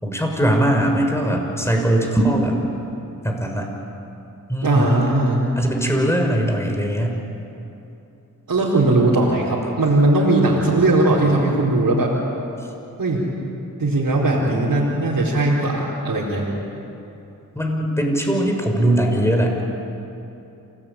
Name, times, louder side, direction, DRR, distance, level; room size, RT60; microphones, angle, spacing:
voice 1, 0.0-2.6 3.2-3.7 4.5-5.0 5.6-7.2 17.5-19.7, right 1 dB, 5° left, 1 dB, 6.4 m, -20 dB
voice 2, 4.6-5.4 8.5-12.1 13.0-13.2 13.8-16.5, right 2 dB, 65° right, -6 dB, 4.7 m, -18 dB
28.0 x 18.0 x 9.0 m, 2.9 s
cardioid pair, 50°, 36 cm